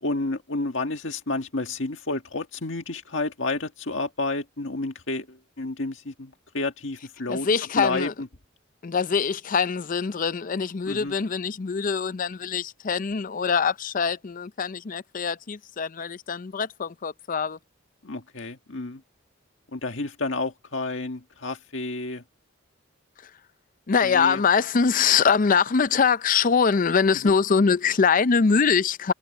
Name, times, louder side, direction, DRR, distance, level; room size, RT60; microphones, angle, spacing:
voice 1, 0.0-7.5 7.8-8.3 10.9-11.1 18.0-19.0 19.7-22.2 24.0-24.4 27.2-27.3, left 2 dB, 70° left, 1.8 m, -30 dB
voice 2, 7.3-8.1 8.8-17.6 23.9-29.1, left 5 dB, 45° left, 0.5 m, -23 dB
head